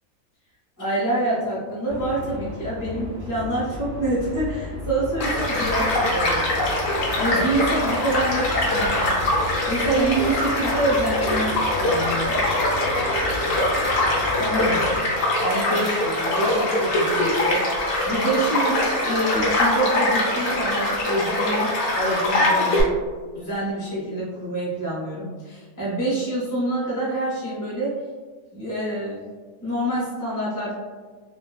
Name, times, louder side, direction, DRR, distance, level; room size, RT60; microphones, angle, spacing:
voice 1, 0.8-6.6 7.2-12.4 14.4-14.9 15.4-23.0 23.3-28.0 28.5-29.2 29.6-30.7, right 1 dB, 20° left, -9 dB, 0.6 m, -27 dB
sound 1, 1.9-15.0, left 2 dB, 70° right, 1.3 m, -35 dB
Child speech kid speaking / Stream / Car passing by, 5.2-22.8, left 1 dB, 65° left, 1.1 m, -23 dB
3.6 x 2.2 x 2.3 m, 1.4 s
omnidirectional pair, 1.5 m